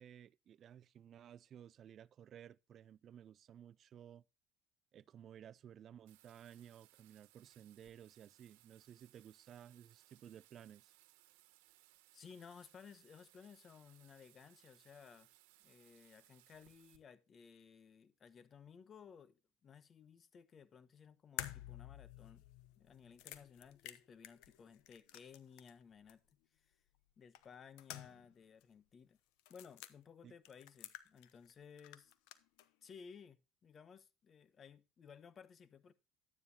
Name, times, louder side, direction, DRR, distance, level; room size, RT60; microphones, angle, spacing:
voice 1, 0.0-4.2 4.9-10.9 30.2-30.3, right 9 dB, 50° right, 0.5 m, -56 dB
Bathtub (filling or washing), 6.1-17.0, right 17 dB, 85° right, 1.2 m, -68 dB
voice 2, 12.1-15.3 15.6-22.4 22.8-26.2 26.5-26.7 27.2-29.2 29.5-32.1 32.8-35.9, left 6 dB, 40° left, 1.1 m, -58 dB
sound 1, 21.4-25.8 26.1-26.2 27.3-28.3 28.6-28.7 29.4-29.9 30.4-31.5 31.8-32.7, left 14 dB, 75° left, 0.9 m, -50 dB
12.0 x 9.6 x 2.8 m
supercardioid pair, 95°, 0 cm